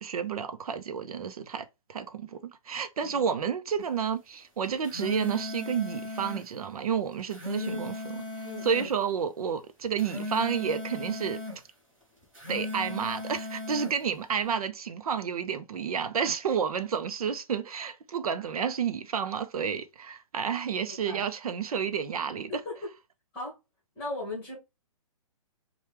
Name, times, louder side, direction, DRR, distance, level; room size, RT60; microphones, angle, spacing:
voice 1, 0.0-2.4 2.7-8.2 8.6-11.4 12.5-22.6, right 7 dB, 85° right, 0.6 m, -30 dB
sound 1, 4.6-6.5 7.1-8.9 9.8-11.6 12.2-14.0, left 2 dB, 15° right, 1.3 m, -37 dB
voice 2, 8.4-8.9 20.8-21.3 22.5-22.9 23.3-23.6 23.9-24.5, left 2 dB, 10° left, 1.5 m, -38 dB
4.3 x 2.3 x 3.3 m
hypercardioid pair, 175°, 18 cm